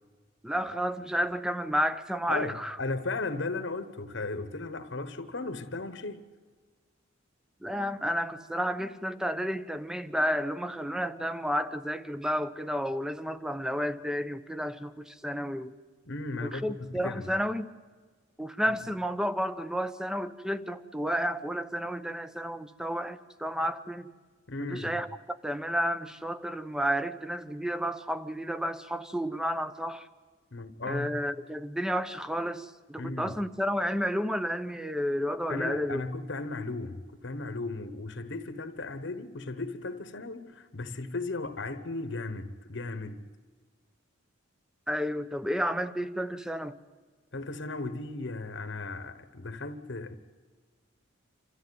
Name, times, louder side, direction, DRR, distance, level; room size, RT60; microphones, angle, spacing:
voice 1, 0.4-2.8 7.6-15.7 16.4-17.7 18.4-24.1 24.6-30.1 30.8-36.0 44.9-46.7, equal, 5° right, 0.8 m, -31 dB
voice 2, 2.3-6.3 16.0-17.3 24.5-25.0 30.5-31.2 33.0-33.3 35.5-43.2 47.3-50.1, left 3 dB, 60° left, 1.2 m, -36 dB
27.5 x 13.5 x 9.5 m
head